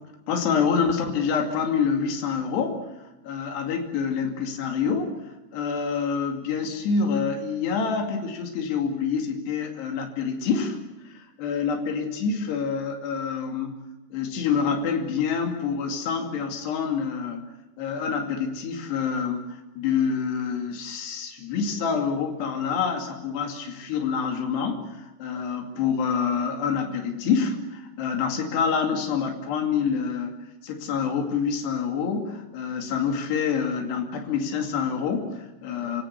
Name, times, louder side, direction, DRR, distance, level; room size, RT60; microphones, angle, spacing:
voice 1, 0.3-2.8 3.2-5.1 5.5-10.8 11.1-13.8 14.1-17.5 17.8-36.0, left 6 dB, 80° left, 2 dB, 4.6 m, -27 dB
29.0 x 17.0 x 8.3 m, 1.1 s
omnidirectional pair, 4.8 m